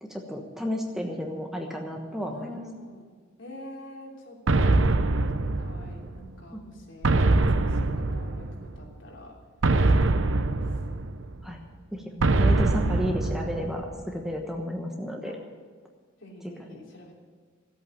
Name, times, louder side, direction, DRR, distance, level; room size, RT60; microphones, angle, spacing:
voice 1, 0.0-2.5 11.4-11.6 11.9-15.4, equal, ahead, 1 dB, 1.2 m, -32 dB
voice 2, 2.3-3.1 3.4-7.2 7.5-9.3 9.8-10.8 15.2-15.4 16.2-17.2, left 1 dB, 65° left, -1 dB, 3.2 m, -46 dB
sound 1, 4.5-6.2 7.0-8.8 9.6-11.4 12.2-14.0, right 2 dB, 65° right, 0.8 m, -23 dB
14.5 x 8.4 x 9.3 m, 1.5 s
head